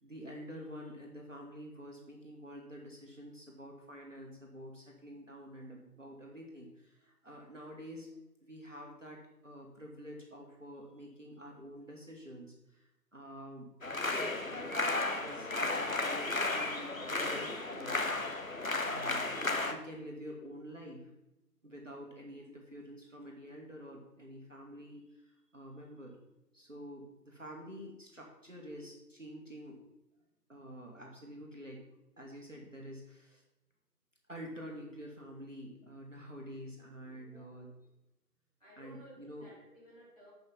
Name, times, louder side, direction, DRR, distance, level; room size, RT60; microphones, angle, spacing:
voice 1, 0.0-8.1 8.4-18.1 18.7-21.1 21.6-26.2 26.5-29.8 30.5-31.8 32.2-33.4 34.3-37.7 38.8-39.5, equal, 50° right, -1 dB, 1.6 m, -48 dB
sound 1, 13.8-19.7, left 2 dB, 55° left, 0.9 m, -34 dB
voice 2, 37.0-37.6 38.6-40.3, right 1 dB, 20° left, -11 dB, 3.5 m, -57 dB
7.8 x 5.3 x 5.4 m, 0.94 s
figure-of-eight pair, 180°, 49 cm